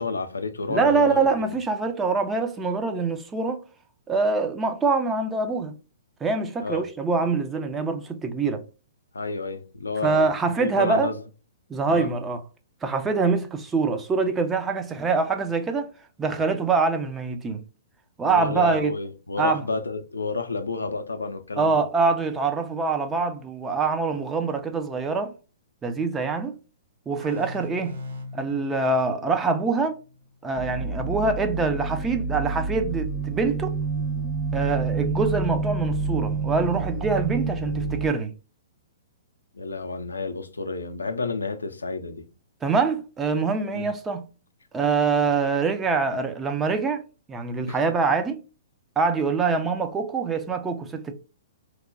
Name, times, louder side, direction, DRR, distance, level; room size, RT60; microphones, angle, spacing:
voice 1, 0.0-1.5 6.6-6.9 9.1-11.2 11.9-12.1 18.3-21.8 39.5-42.3 43.7-43.9 47.7-47.8, left 3 dB, 80° left, 0.4 m, -31 dB
voice 2, 0.7-3.6 4.1-5.7 6.2-8.6 10.0-11.1 11.7-12.4 12.8-15.9 16.2-17.6 18.2-18.9 19.4-19.7 21.6-25.3 25.8-26.5 27.1-28.0 28.3-30.0 30.4-33.8 34.5-38.3 42.6-44.3 44.7-47.0 47.3-48.4 49.0-51.1, right 4 dB, 15° right, 0.4 m, -24 dB
sound 1, 27.2-30.6, left 2 dB, 75° right, 0.8 m, -41 dB
sound 2, 30.5-38.1, right 4 dB, 40° right, 1.1 m, -28 dB
2.9 x 2.1 x 2.5 m
figure-of-eight pair, 115°, 0 cm